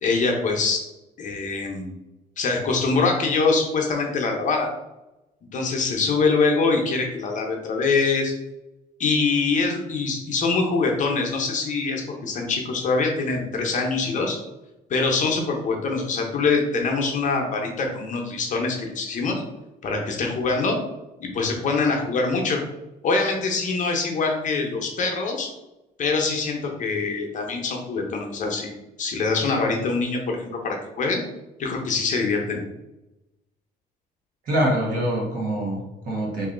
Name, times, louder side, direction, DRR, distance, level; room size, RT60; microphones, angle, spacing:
voice 1, 0.0-0.8 1.2-1.9 2.4-4.7 5.5-8.3 9.0-14.4 14.9-19.4 19.8-20.8 21.2-22.6 23.0-25.5 26.0-28.7 29.0-31.2 31.6-32.6, left 4 dB, 50° left, 2 dB, 0.8 m, -24 dB
voice 2, 34.5-36.5, right 1 dB, 55° right, -2 dB, 1.4 m, -24 dB
3.0 x 2.8 x 3.8 m, 0.97 s
cardioid pair, 110°, 17 cm